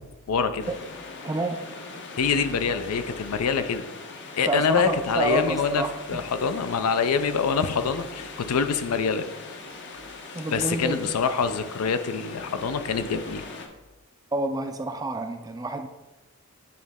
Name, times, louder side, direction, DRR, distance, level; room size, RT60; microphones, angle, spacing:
voice 1, 0.3-0.7 2.2-3.8 4.4-5.8 6.1-9.3 10.5-13.4, left 5 dB, 80° left, 10 dB, 0.5 m, -25 dB
sound 1, 0.6-13.7, left 3 dB, 55° left, 0.8 m, -41 dB
voice 2, 1.2-1.6 4.5-6.2 10.3-11.1 14.3-15.9, right 2 dB, 15° right, 7 dB, 0.3 m, -29 dB
9.3 x 3.2 x 3.5 m, 1.1 s
head